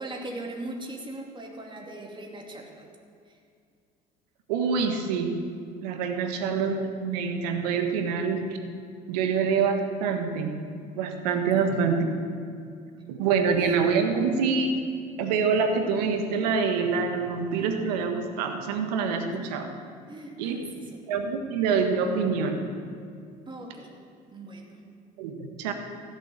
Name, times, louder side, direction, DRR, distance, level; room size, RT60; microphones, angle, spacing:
voice 1, 0.0-2.9 3.3-3.4 11.6-11.8 13.6-13.7 19.3-19.5 20.1-21.0 23.5-24.0 24.3-24.8, right 2 dB, 25° right, 0 dB, 2.7 m, -40 dB
voice 2, 4.5-5.4 5.8-8.5 9.1-10.6 10.9-12.1 13.1-14.9 15.2-19.7 20.4-20.6 21.1-22.6 25.2-25.7, right 5 dB, 85° right, 6 dB, 1.5 m, -26 dB
16.0 x 7.4 x 9.0 m, 2.3 s
hypercardioid pair, 65°, 20 cm